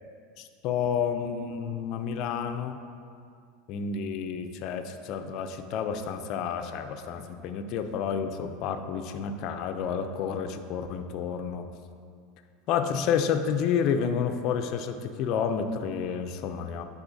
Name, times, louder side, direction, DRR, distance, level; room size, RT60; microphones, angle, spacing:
voice 1, 0.4-2.8 3.7-11.7 12.7-16.8, left 7 dB, 55° left, 7 dB, 0.4 m, -30 dB
9.8 x 4.0 x 2.7 m, 2.3 s
supercardioid pair, 110°, 0 cm